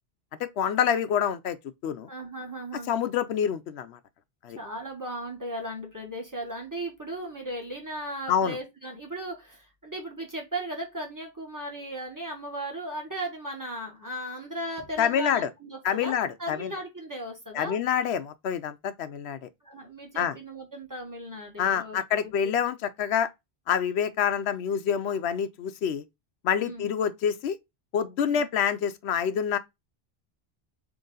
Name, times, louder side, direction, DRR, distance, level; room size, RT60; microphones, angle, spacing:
voice 1, 0.4-1.6 1.8-2.1 2.9-4.0 4.4-4.6 8.3-8.6 15.0-15.5 15.8-16.7 17.5-19.5 20.2-20.3 21.6-23.3 23.7-26.0 26.4-27.6 27.9-29.6, left 8 dB, 85° left, 0.9 m, -27 dB
voice 2, 2.1-2.9 4.6-16.1 16.4-17.8 19.6-22.5 26.6-26.9 28.2-28.5, right 1 dB, 20° right, 1.4 m, -37 dB
3.9 x 3.0 x 3.8 m
omnidirectional pair, 1.1 m